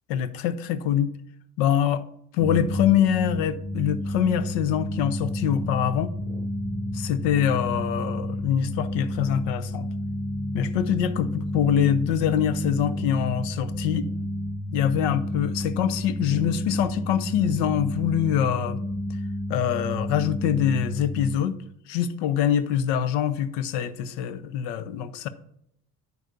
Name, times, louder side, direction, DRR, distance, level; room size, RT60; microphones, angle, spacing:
voice 1, 0.1-1.1 1.6-2.0 2.3-6.1 6.9-9.9 10.5-14.1 14.7-18.8 19.5-21.6 21.9-25.3, left 9 dB, 60° left, 0.8 m, -24 dB
sound 1, 2.4-21.3, left 1 dB, 5° right, 1.2 m, -31 dB
10.5 x 8.3 x 2.6 m
figure-of-eight pair, 55°, 48 cm